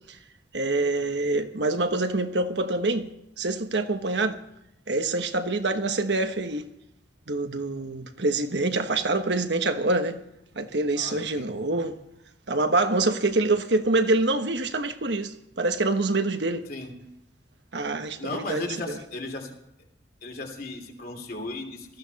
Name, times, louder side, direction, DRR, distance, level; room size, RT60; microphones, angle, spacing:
voice 1, 0.5-3.1 3.4-4.4 4.9-6.6 7.3-10.2 10.6-12.0 12.5-16.7 17.7-19.0, right 2 dB, 70° right, 1.2 m, -26 dB
voice 2, 11.0-11.5 16.7-16.9 18.2-19.5 20.2-22.0, left 2 dB, 55° left, 3.0 m, -35 dB
18.5 x 14.0 x 4.1 m
head